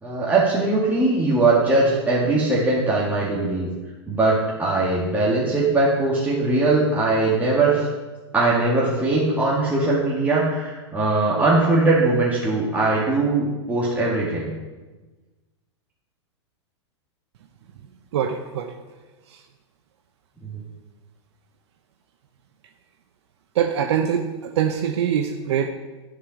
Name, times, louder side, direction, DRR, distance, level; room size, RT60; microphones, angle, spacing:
voice 1, 0.0-3.7 4.1-7.9 8.3-14.5 20.5-20.6, right 2 dB, 10° right, -6 dB, 1.9 m, -20 dB
voice 2, 18.1-18.7 19.3-19.4 23.5-25.7, right 8 dB, 65° right, 6 dB, 0.7 m, -23 dB
10.5 x 4.9 x 5.9 m, 1.2 s
hypercardioid pair, 110°, 15 cm